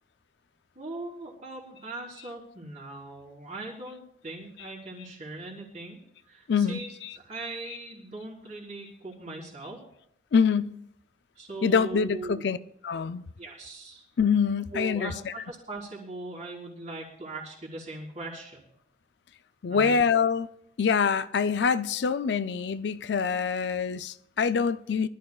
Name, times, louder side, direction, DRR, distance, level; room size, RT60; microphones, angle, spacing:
voice 1, 0.8-6.0 6.3-6.9 7.2-9.8 11.3-12.5 13.0-13.1 13.4-14.0 14.7-18.6 19.7-20.0, right 2 dB, 40° right, 3.9 m, -40 dB
voice 2, 6.5-6.8 10.3-10.8 11.6-12.6 12.8-13.2 14.2-15.1 19.6-20.5 20.8-25.1, left 6 dB, 70° left, 0.4 m, -25 dB
23.5 x 13.0 x 2.4 m
head